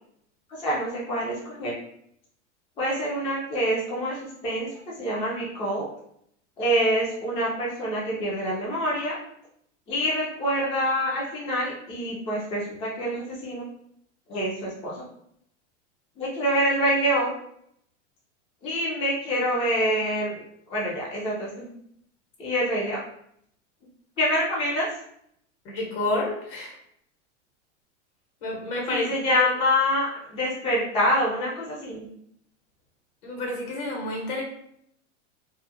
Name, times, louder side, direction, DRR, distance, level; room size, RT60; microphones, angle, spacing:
voice 1, 0.5-1.8 2.8-5.9 6.6-9.2 9.9-13.7 14.3-15.0 16.2-17.3 18.6-20.4 20.7-21.7 22.4-23.0 24.2-24.9 28.9-32.1, equal, 15° left, -5 dB, 0.4 m, -26 dB
voice 2, 25.6-26.8 28.4-29.4 33.2-34.4, left 2 dB, 50° left, -1 dB, 1.1 m, -29 dB
2.4 x 2.1 x 2.6 m, 0.71 s
hypercardioid pair, 125°, 36 cm